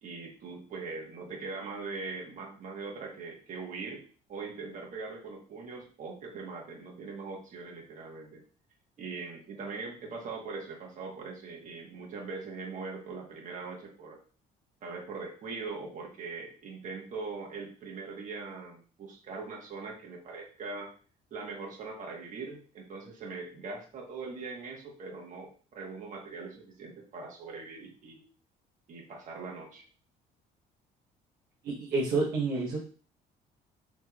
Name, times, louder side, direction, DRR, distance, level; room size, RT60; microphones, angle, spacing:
voice 1, 0.0-4.0 4.3-8.4 9.0-14.2 14.8-20.9 21.3-28.2 28.9-29.8, right 4 dB, 50° right, -1 dB, 1.2 m, -41 dB
voice 2, 31.6-32.8, right 3 dB, 65° right, -4 dB, 0.9 m, -29 dB
3.5 x 3.0 x 2.3 m, 0.40 s
cardioid pair, 110°, 17 cm